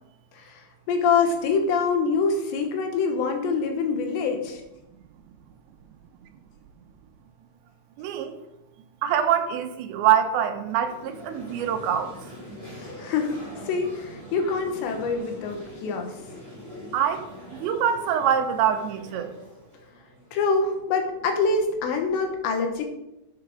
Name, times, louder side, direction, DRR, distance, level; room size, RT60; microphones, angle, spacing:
voice 1, 0.3-4.6 13.0-16.1 20.3-22.8, left 4 dB, 75° left, 5 dB, 3.3 m, -25 dB
voice 2, 8.0-8.3 9.0-12.1 16.9-17.2 17.6-19.3, right 9 dB, 85° right, 6 dB, 3.1 m, -24 dB
sound 1, 10.7-20.7, left 1 dB, 15° left, 3.9 m, -43 dB
8.9 x 7.1 x 6.4 m, 0.90 s
omnidirectional pair, 5.3 m